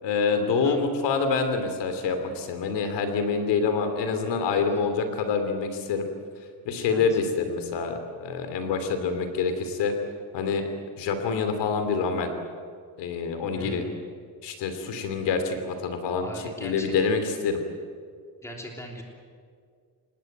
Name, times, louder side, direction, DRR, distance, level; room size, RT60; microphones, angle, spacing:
voice 1, 0.0-6.1 6.6-9.9 10.3-10.7 11.0-12.3 13.0-13.8 14.4-16.3 16.6-17.6, left 5 dB, 75° left, 7 dB, 3.1 m, -26 dB
voice 2, 6.8-7.2 13.5-14.0 16.2-16.9 18.4-19.0, equal, 5° left, 0 dB, 3.3 m, -40 dB
26.5 x 20.0 x 8.1 m, 2.1 s
cardioid pair, 175°, 42 cm